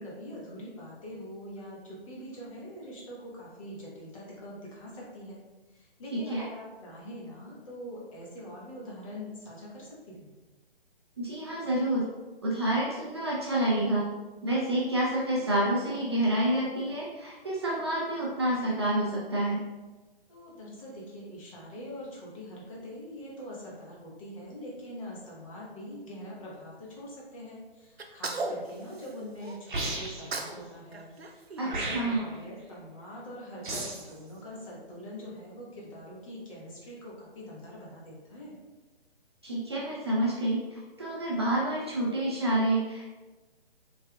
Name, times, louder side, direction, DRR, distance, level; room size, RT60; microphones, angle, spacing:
voice 1, 0.0-5.4 5.7-10.3 20.3-38.5, equal, 35° left, -5 dB, 1.1 m, -43 dB
voice 2, 6.1-6.4 11.2-12.1 12.4-14.0 14.4-19.6 31.6-32.3 39.4-43.1, right 1 dB, 25° right, -5 dB, 0.4 m, -28 dB
Sneeze, 28.0-29.6 30.0-30.6 30.9-32.4, right 3 dB, 80° right, 0.6 m, -37 dB
sound 1, 29.7-30.4 31.7-32.4 33.6-34.1, right 2 dB, 50° right, 0.9 m, -34 dB
4.4 x 3.3 x 2.3 m, 1.2 s
figure-of-eight pair, 135°, 31 cm